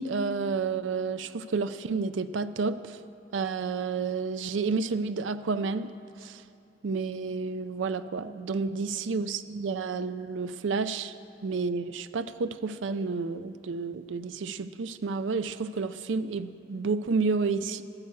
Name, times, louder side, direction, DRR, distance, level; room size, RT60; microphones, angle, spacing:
voice 1, 0.0-3.0 3.3-5.9 6.2-6.4 6.8-11.1 11.4-17.8, right 4 dB, 85° right, 12 dB, 0.4 m, -30 dB
14.0 x 7.0 x 9.5 m, 2.7 s
head